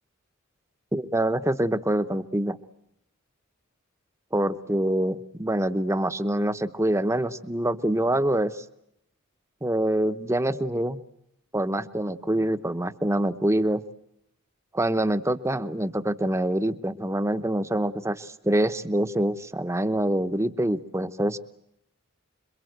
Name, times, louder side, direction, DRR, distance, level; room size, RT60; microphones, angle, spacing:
voice 1, 0.9-2.6 4.3-8.6 9.6-11.0 11.5-13.8 14.7-21.4, right 1 dB, 15° right, 12 dB, 0.9 m, -25 dB
27.0 x 23.0 x 8.0 m, 0.80 s
head